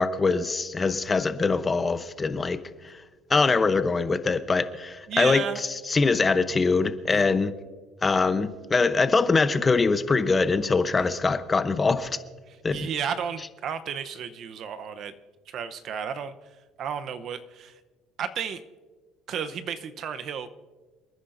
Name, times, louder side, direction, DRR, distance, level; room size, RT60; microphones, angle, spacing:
voice 1, 0.0-2.6 3.3-5.4 5.9-7.5 8.0-12.2 12.6-12.9, left 4 dB, 20° left, 11 dB, 0.8 m, -23 dB
voice 2, 5.1-5.6 7.1-7.4 11.0-11.1 12.7-15.1 15.5-16.3 16.8-17.7 18.2-18.6 19.3-20.5, right 7 dB, 55° right, 10 dB, 0.8 m, -33 dB
28.0 x 9.9 x 2.6 m, 1.3 s
cardioid pair, 110°, 0 cm